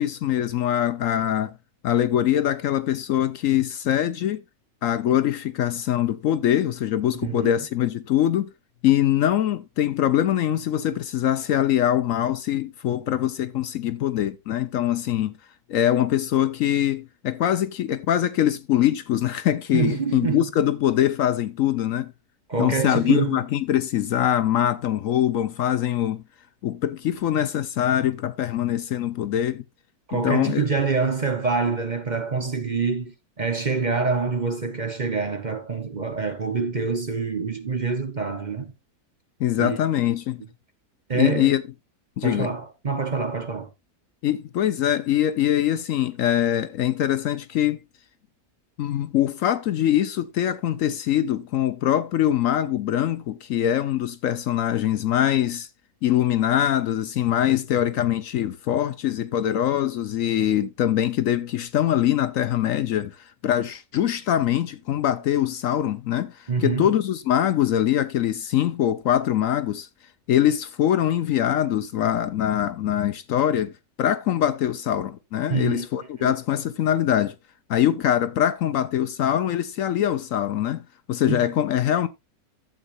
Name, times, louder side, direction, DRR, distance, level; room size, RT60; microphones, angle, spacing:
voice 1, 0.0-1.5 1.8-4.4 4.8-8.5 8.8-15.3 15.7-22.1 22.6-26.2 26.6-29.6 30.1-30.6 39.4-40.4 41.1-41.6 42.2-42.5 44.2-47.8 48.8-55.7 56.0-69.9 70.3-73.7 74.0-77.3 77.7-82.1, left 11 dB, 65° left, 0.9 m, -23 dB
voice 2, 7.1-7.5 19.7-20.5 22.5-23.4 30.1-38.7 39.6-39.8 41.1-41.5 42.2-43.7 66.5-66.9 75.5-75.9 76.2-76.3 81.3-81.4, right 4 dB, 35° right, 1.0 m, -26 dB
12.0 x 7.9 x 2.5 m
omnidirectional pair, 1.6 m